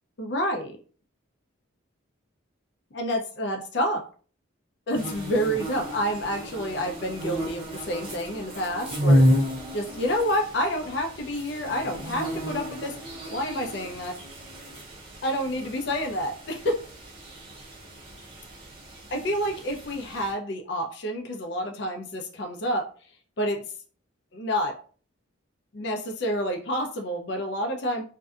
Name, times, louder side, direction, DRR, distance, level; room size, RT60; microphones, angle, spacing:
voice 1, 0.2-0.8 2.9-4.0 4.9-9.3 9.7-14.2 15.2-16.9 19.1-22.9 23.4-23.6 24.3-24.8 25.7-28.0, equal, 55° left, 3 dB, 0.5 m, -29 dB
sound 1, 4.9-20.3, equal, 25° right, 0.6 m, -30 dB
2.6 x 2.2 x 2.3 m, 0.41 s
head